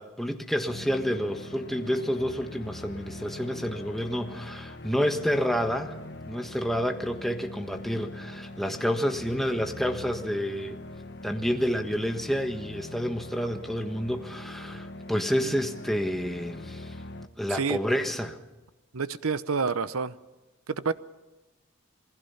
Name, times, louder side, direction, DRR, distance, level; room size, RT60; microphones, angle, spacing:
voice 1, 0.0-5.9 6.3-10.8 11.2-16.9 17.4-18.4, equal, ahead, 4 dB, 1.4 m, -29 dB
sound 1, 0.7-17.3, left 2 dB, 50° left, 1.1 m, -42 dB
voice 2, 18.9-20.2 20.7-20.9, right 5 dB, 90° right, 14 dB, 0.8 m, -28 dB
27.5 x 20.5 x 5.8 m, 1.1 s
head